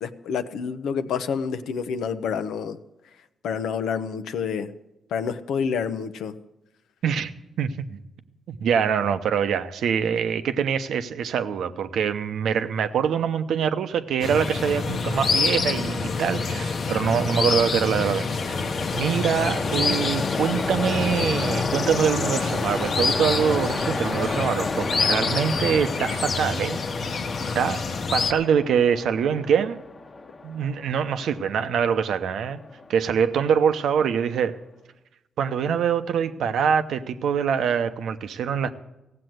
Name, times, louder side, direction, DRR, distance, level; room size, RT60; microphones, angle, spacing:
voice 1, 0.0-2.8 3.4-4.7 5.1-6.3, left 6 dB, 85° left, 9 dB, 0.7 m, -28 dB
voice 2, 7.6-8.0 8.5-27.1 27.5-27.8 28.1-29.8 30.4-32.6 32.9-34.6 35.4-38.7, right 7 dB, 80° right, 10 dB, 0.7 m, -24 dB
sound 1, 14.2-28.3, left 4 dB, 60° left, 1.0 m, -27 dB
Train, 17.1-34.3, left 3 dB, 40° left, 1.1 m, -33 dB
16.0 x 7.6 x 7.8 m, 0.96 s
cardioid pair, 70°, 0 cm